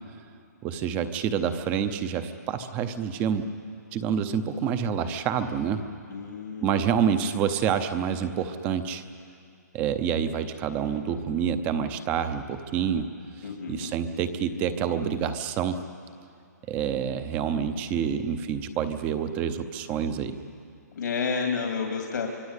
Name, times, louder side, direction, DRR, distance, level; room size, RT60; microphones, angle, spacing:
voice 1, 0.6-3.5 3.9-5.8 6.6-9.0 9.7-13.1 13.7-15.8 16.7-20.4, right 8 dB, 15° right, 11 dB, 0.8 m, -27 dB
voice 2, 6.1-7.0 13.4-13.9 20.9-22.3, left 5 dB, 80° left, 2 dB, 2.6 m, -31 dB
25.0 x 21.5 x 8.3 m, 2.5 s
hypercardioid pair, 170°, 10 cm